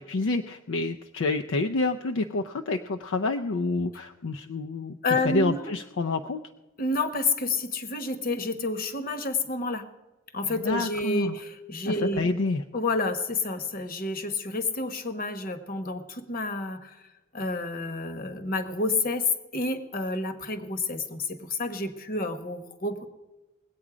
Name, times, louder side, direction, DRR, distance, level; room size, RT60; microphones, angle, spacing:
voice 1, 0.1-6.4 10.5-11.3 11.9-12.6, left 3 dB, 65° left, 5 dB, 0.5 m, -28 dB
voice 2, 5.0-5.7 6.8-9.9 10.3-12.3 12.7-17.0 17.3-19.3 19.5-23.1, left 2 dB, 45° left, 10 dB, 1.1 m, -29 dB
20.0 x 8.4 x 4.9 m, 1.1 s
head